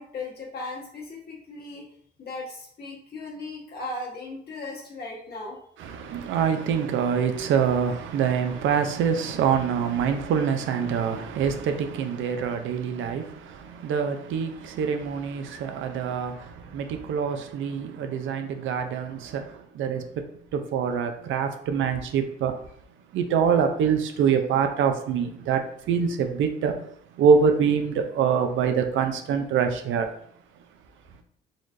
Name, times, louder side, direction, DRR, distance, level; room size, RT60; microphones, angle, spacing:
voice 1, 0.0-1.8 2.2-5.6, left 2 dB, 55° left, 1.4 m, -37 dB
voice 2, 5.8-20.0 20.5-22.5 23.1-26.9 27.1-30.1, right 7 dB, 75° right, 0.5 m, -25 dB
4.0 x 3.1 x 2.6 m
cardioid pair, 90°, 20 cm